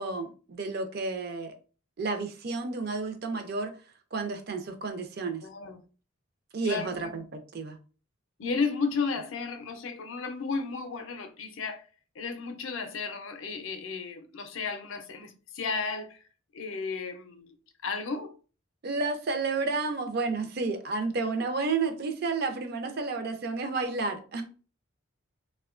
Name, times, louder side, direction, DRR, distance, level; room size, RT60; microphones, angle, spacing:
voice 1, 0.0-1.5 2.0-3.7 4.1-5.4 6.5-7.8 18.8-24.4, right 3 dB, 50° right, 0.4 m, -31 dB
voice 2, 5.4-5.8 6.6-7.2 8.4-11.8 12.2-16.2 16.5-17.5 17.8-18.3, left 4 dB, 65° left, 0.5 m, -33 dB
3.5 x 2.2 x 2.4 m
head